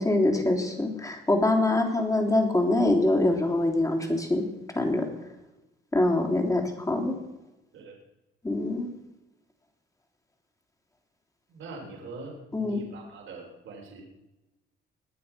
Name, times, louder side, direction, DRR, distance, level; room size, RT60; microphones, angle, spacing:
voice 1, 0.0-4.4 4.7-5.1 5.9-7.1 8.4-8.9 12.5-12.8, left 2 dB, 15° left, 2 dB, 3.3 m, -24 dB
voice 2, 11.5-14.0, right 3 dB, 75° right, 1 dB, 3.6 m, -43 dB
21.5 x 7.9 x 5.7 m, 0.98 s
cardioid pair, 90°, 20 cm